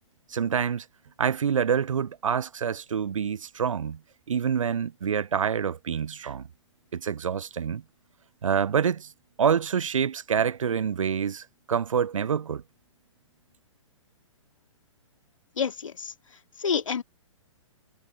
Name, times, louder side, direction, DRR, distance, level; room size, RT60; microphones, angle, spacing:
voice 1, 0.3-0.8 1.2-4.0 4.3-6.4 6.9-7.8 8.4-9.1 9.4-12.6, right 7 dB, 80° right, 0.5 m, -26 dB
voice 2, 15.6-16.1 16.6-17.0, left 6 dB, 75° left, 2.3 m, -28 dB
figure-of-eight pair, 120°, 16 cm